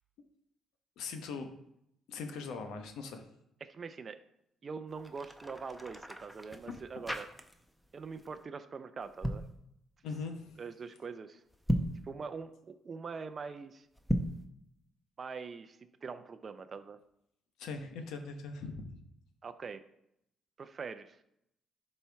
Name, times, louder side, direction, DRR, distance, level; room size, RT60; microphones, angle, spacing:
voice 1, 1.0-1.5 2.1-3.3 6.7-6.8 10.0-10.6 17.6-18.9, left 4 dB, 85° left, 6 dB, 0.9 m, -41 dB
voice 2, 3.6-4.2 4.6-7.3 7.9-9.4 10.6-11.4 12.0-13.9 15.2-17.0 19.4-19.8 20.6-21.2, right 5 dB, 40° right, 9 dB, 0.5 m, -43 dB
sound 1, 4.9-7.8 8.1-8.4 9.0-9.5 11.5-12.1 14.0-14.5, equal, ahead, 0.7 m, -35 dB
11.5 x 4.4 x 3.5 m, 0.78 s
cardioid pair, 90°, 0 cm